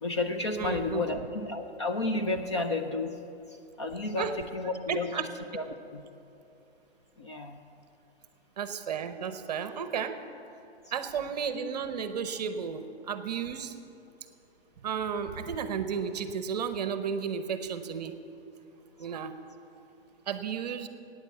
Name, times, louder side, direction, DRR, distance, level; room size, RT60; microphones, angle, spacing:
voice 1, 0.0-3.2 3.5-5.3 5.5-6.0 7.2-7.6, left 2 dB, 25° left, 5 dB, 0.5 m, -32 dB
voice 2, 0.6-1.0 4.1-4.3 4.9-5.3 8.6-10.2 10.9-13.7 14.8-18.2 19.0-19.4 20.3-20.9, right 7 dB, 40° right, 10 dB, 0.8 m, -33 dB
13.5 x 9.3 x 8.2 m, 2.7 s
hypercardioid pair, 165°, 32 cm